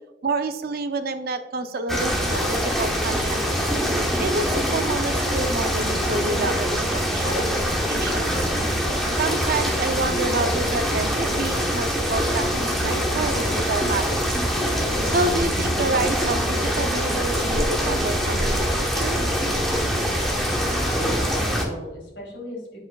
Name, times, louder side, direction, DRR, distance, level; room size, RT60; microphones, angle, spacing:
voice 1, 0.2-3.4 4.2-7.6 7.9-8.5 9.1-14.4 15.0-19.2, right 3 dB, 55° right, 9 dB, 0.5 m, -28 dB
sound 1, 1.9-21.6, equal, ahead, 0.9 m, -24 dB
voice 2, 20.9-22.8, left 1 dB, 85° left, 0 dB, 1.9 m, -37 dB
8.7 x 5.0 x 2.3 m, 1.0 s
head